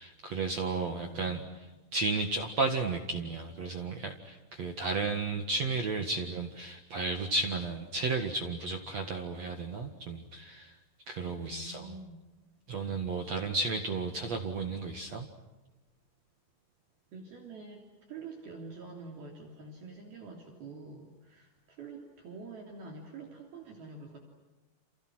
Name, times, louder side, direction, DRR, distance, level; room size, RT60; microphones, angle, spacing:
voice 1, 0.0-1.4 1.9-10.7 11.1-11.8 12.7-15.3, right 3 dB, 70° right, 4 dB, 1.6 m, -33 dB
voice 2, 1.0-1.5 11.3-12.2 17.1-24.2, right 3 dB, 50° right, 2 dB, 4.6 m, -47 dB
29.5 x 29.5 x 6.3 m, 1.1 s
omnidirectional pair, 6.0 m